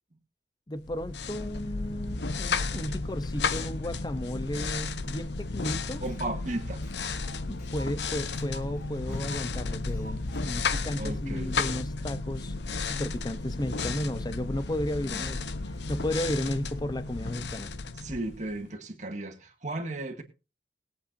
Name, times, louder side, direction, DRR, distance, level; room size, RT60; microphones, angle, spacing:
voice 1, 0.7-6.0 7.5-12.5 12.8-15.4 15.9-17.7, left 1 dB, 20° left, 0.7 m, -34 dB
sound 1, 0.8-18.7, left 3 dB, 70° left, 0.8 m, -33 dB
sound 2, 5.6-10.6, equal, 50° left, 2.5 m, -51 dB
voice 2, 6.0-6.8 9.1-9.2 11.0-11.5 15.1-15.3 16.3-16.4 18.0-20.2, right 2 dB, 40° right, 2.0 m, -35 dB
20.5 x 8.6 x 2.6 m
head